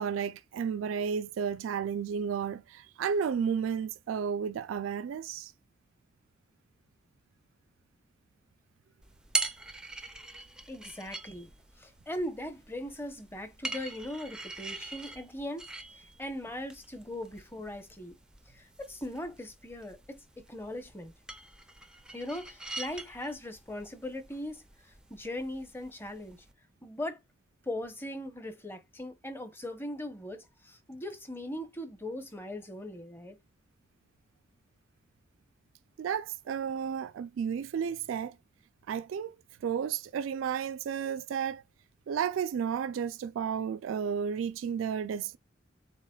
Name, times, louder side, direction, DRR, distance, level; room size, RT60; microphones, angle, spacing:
voice 1, 0.0-5.5 36.0-38.4 38.9-39.4 39.6-41.6 42.1-45.4, right 7 dB, 85° right, 0.3 m, -32 dB
sound 1, 9.0-26.5, right 3 dB, 5° right, 0.4 m, -42 dB
voice 2, 10.7-11.5 11.8-15.7 15.9-18.2 18.5-20.2 20.5-21.1 22.1-24.6 25.1-26.4 26.8-27.2 27.7-33.4, left 1 dB, 10° left, 0.8 m, -39 dB
7.3 x 2.9 x 2.3 m
head